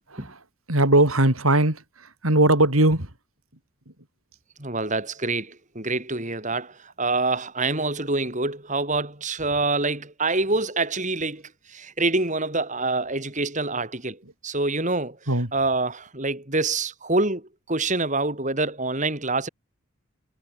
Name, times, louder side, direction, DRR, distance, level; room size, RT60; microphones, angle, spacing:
voice 1, 0.7-3.1 15.3-15.5, right 1 dB, 85° right, 5.3 m, -20 dB
voice 2, 4.6-11.4 11.7-15.2 15.5-17.4 17.7-19.5, right 3 dB, 35° right, 5.6 m, -26 dB
head